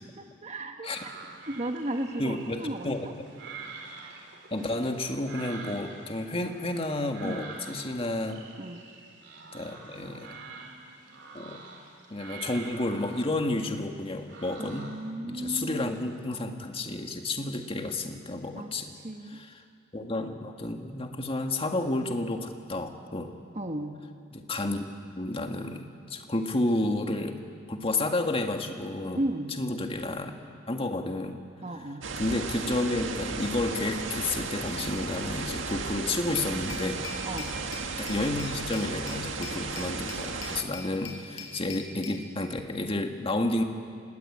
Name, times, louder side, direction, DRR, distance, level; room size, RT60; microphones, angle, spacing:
voice 1, 0.2-1.1 1.5-3.1 7.2-7.5 8.6-8.8 14.6-15.9 18.5-19.4 23.5-24.0 29.1-29.6 31.6-32.0 37.2-37.5, right 1 dB, 35° right, 4 dB, 1.5 m, -35 dB
sound 1, 0.9-15.2, right 4 dB, 65° right, 3.9 m, -46 dB
voice 2, 2.2-3.1 4.5-8.4 9.5-10.4 11.3-11.6 12.1-14.9 15.2-18.9 19.3-19.5 19.9-23.3 24.3-27.4 27.7-29.2 29.6-30.3 30.7-31.4 32.2-37.0 38.0-43.6, left 2 dB, 30° left, 4 dB, 2.0 m, -31 dB
sound 2, 32.0-40.6, right 4 dB, 85° right, 1.9 m, -35 dB
Glass, 36.3-42.2, left 5 dB, 90° left, 5.2 m, -43 dB
28.0 x 20.0 x 8.7 m, 2.2 s
head